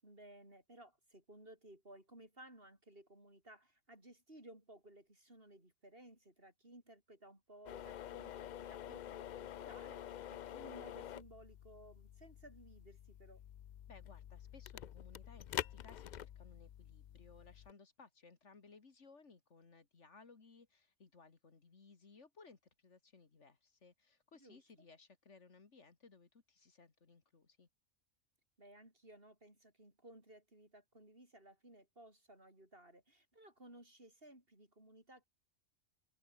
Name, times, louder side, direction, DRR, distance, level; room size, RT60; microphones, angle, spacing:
voice 1, 0.0-13.4 24.3-24.6 28.6-35.2, right 1 dB, 45° right, 7.5 m, -59 dB
sound 1, 7.7-17.7, left 10 dB, 85° left, 0.4 m, -48 dB
voice 2, 13.9-27.7, left 4 dB, 65° left, 2.3 m, -61 dB
omnidirectional pair, 1.3 m